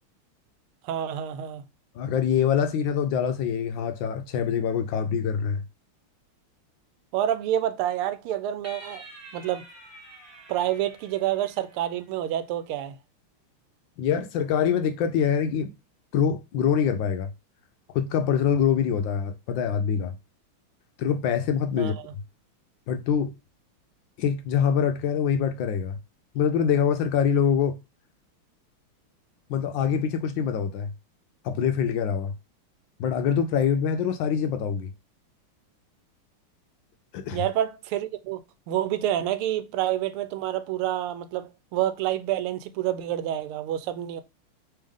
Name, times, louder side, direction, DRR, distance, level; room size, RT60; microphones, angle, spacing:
voice 1, 0.8-1.6 7.1-9.0 9.3-9.6 10.5-13.0 21.8-22.1 37.3-38.4 38.7-44.2, right 12 dB, 85° right, 1.5 m, -28 dB
voice 2, 1.9-5.6 14.0-15.7 16.1-17.3 17.9-20.1 21.0-21.9 22.9-23.3 24.2-26.0 26.3-27.8 29.5-30.9 31.4-32.3 33.0-34.9 37.1-37.4, left 7 dB, 75° left, 1.2 m, -24 dB
sound 1, 8.6-12.2, right 1 dB, 30° right, 1.6 m, -48 dB
3.5 x 3.3 x 3.5 m
omnidirectional pair, 2.3 m